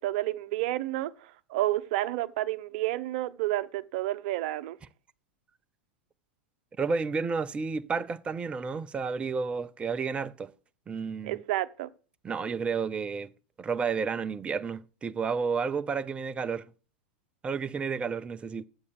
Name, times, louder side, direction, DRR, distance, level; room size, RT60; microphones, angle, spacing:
voice 1, 0.0-4.8 11.2-11.9, right 15 dB, 55° right, 0.8 m, -30 dB
voice 2, 6.8-10.5 10.9-11.4 12.2-13.3 13.6-16.6 17.4-18.6, right 5 dB, 20° right, 0.5 m, -31 dB
7.9 x 7.2 x 6.7 m
figure-of-eight pair, 90°, 6 cm